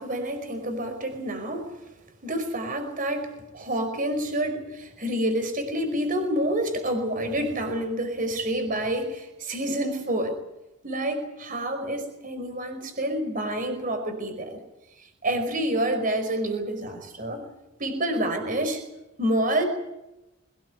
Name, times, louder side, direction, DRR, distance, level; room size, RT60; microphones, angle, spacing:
voice 1, 0.0-1.8 2.2-3.3 3.5-10.4 10.8-14.6 15.0-17.4 17.8-18.8 19.2-19.6, right 1 dB, 45° right, 7 dB, 5.1 m, -28 dB
22.5 x 19.5 x 9.4 m, 0.95 s
head